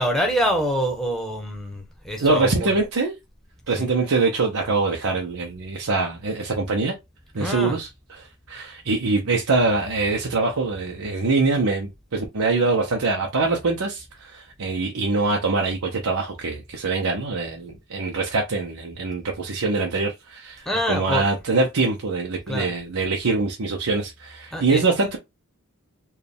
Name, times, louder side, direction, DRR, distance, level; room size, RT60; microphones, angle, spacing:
voice 1, 0.0-2.8 3.7-3.9 7.4-7.8 20.6-21.2 22.5-22.7 24.5-24.8, equal, ahead, 1.0 m, -25 dB
voice 2, 2.2-3.1 3.7-7.0 7.3-25.2, right 3 dB, 80° right, 0.8 m, -24 dB
4.6 x 2.4 x 3.4 m
head